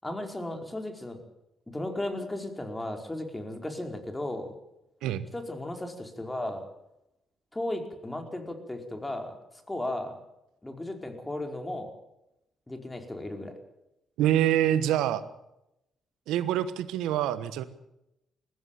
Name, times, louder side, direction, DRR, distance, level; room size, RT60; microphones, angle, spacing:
voice 1, 0.0-1.2 1.7-4.5 5.3-6.6 7.5-9.3 9.7-10.1 10.6-11.9 12.7-13.5, left 1 dB, 15° left, 5 dB, 4.9 m, -35 dB
voice 2, 14.2-15.2 16.3-17.6, right 11 dB, 85° right, 14 dB, 1.3 m, -25 dB
20.0 x 15.0 x 9.2 m, 0.87 s
supercardioid pair, 55°, 0 cm